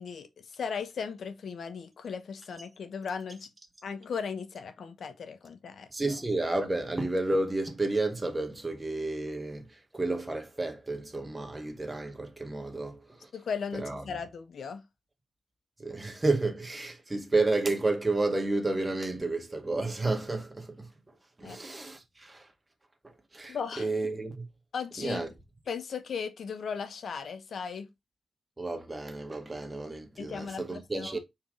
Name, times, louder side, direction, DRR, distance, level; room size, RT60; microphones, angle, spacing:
voice 1, 0.0-3.5 3.8-5.9 13.3-14.8 21.4-21.6 23.5-23.9 24.7-25.2 25.7-27.9 30.2-31.2, left 6 dB, 85° left, 1.1 m, -37 dB
voice 2, 5.9-13.3 13.7-14.0 15.8-22.5 23.0-24.5 25.0-25.3 28.6-31.2, right 2 dB, 20° right, 1.7 m, -31 dB
5.7 x 4.6 x 3.7 m
wide cardioid pair, 100°, 0 cm